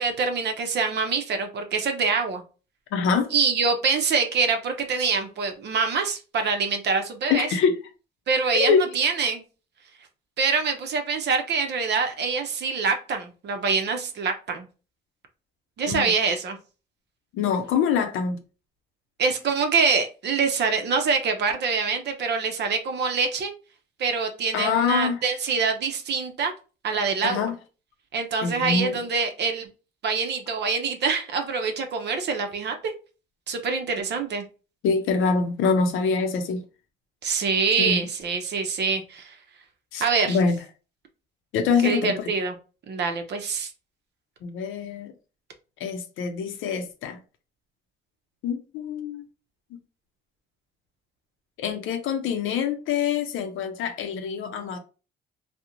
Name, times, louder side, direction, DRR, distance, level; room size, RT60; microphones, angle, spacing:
voice 1, 0.0-2.4 3.3-7.5 8.3-9.4 10.4-14.7 15.8-16.6 19.2-23.5 24.0-26.5 26.8-27.5 28.1-29.7 30.0-32.9 33.5-34.4 37.2-39.3 40.0-40.4 41.8-42.5 42.9-43.7, right 5 dB, 60° right, 0.5 m, -25 dB
voice 2, 2.9-3.3 7.3-7.7 8.5-8.9 15.9-16.1 17.3-18.4 24.5-25.2 27.2-27.6 28.4-29.0 34.8-36.6 37.8-38.0 39.9-40.6 41.5-42.3 44.4-45.1 45.8-47.2 48.4-49.2 51.6-54.8, left 5 dB, 85° left, 0.5 m, -25 dB
2.4 x 2.0 x 2.8 m
cardioid pair, 90°, 20 cm